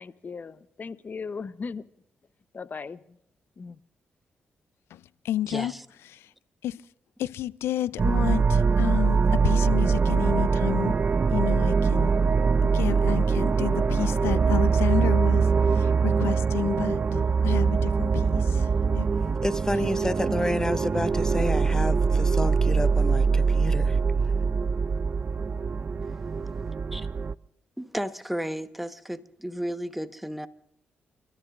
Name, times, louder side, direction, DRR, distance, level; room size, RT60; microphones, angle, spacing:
voice 1, 0.0-1.9 2.5-3.0 3.6-3.8, left 5 dB, 45° left, 0.9 m, -37 dB
voice 2, 4.9-5.7 6.1-6.3 6.6-6.8 7.2-10.9 11.3-12.1 12.6-19.1 19.8-20.1, left 12 dB, 80° left, 0.5 m, -31 dB
voice 3, 5.4-5.8 26.1-26.2 26.9-27.1 27.8-30.5, equal, 5° right, 1.3 m, -33 dB
sound 1, 8.0-27.3, right 5 dB, 40° right, 0.6 m, -23 dB
voice 4, 19.4-24.0, left 1 dB, 15° left, 0.8 m, -30 dB
30.0 x 13.5 x 2.6 m
supercardioid pair, 55°, 4 cm